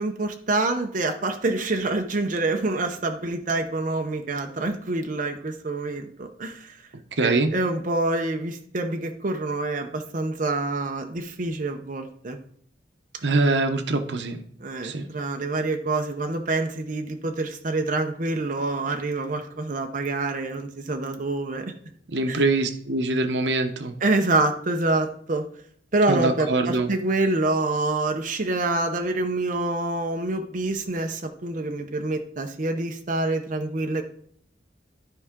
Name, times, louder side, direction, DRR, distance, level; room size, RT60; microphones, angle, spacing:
voice 1, 0.0-6.8 7.2-12.4 14.6-21.6 22.3-22.4 24.0-25.4 25.9-34.0, right 2 dB, 45° right, 4 dB, 0.7 m, -26 dB
voice 2, 7.2-7.5 13.2-14.4 14.8-15.0 22.1-24.0 26.1-26.9, right 3 dB, 80° right, 7 dB, 0.9 m, -23 dB
12.5 x 4.6 x 3.7 m, 0.63 s
head